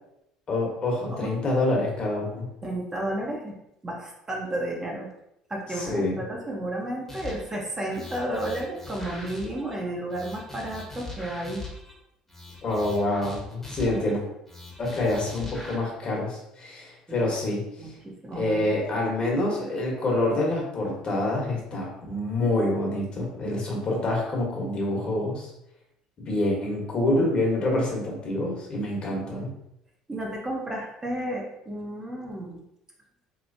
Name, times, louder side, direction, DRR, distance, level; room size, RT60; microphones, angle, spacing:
voice 1, 0.5-2.5 5.7-6.2 12.6-14.2 14.8-17.9 18.4-25.5 26.2-29.5, left 1 dB, 45° left, -2 dB, 1.2 m, -27 dB
voice 2, 2.6-3.6 3.8-5.1 5.5-11.6 17.1-17.2 17.8-18.7 30.1-32.6, right 1 dB, 20° right, -2 dB, 0.9 m, -32 dB
sound 1, 7.1-7.6 7.9-9.8 10.1-11.9 12.3-14.1 14.5-15.8, left 2 dB, 10° left, 1.1 m, -41 dB
3.1 x 3.0 x 2.7 m, 0.81 s
supercardioid pair, 80°, 2 cm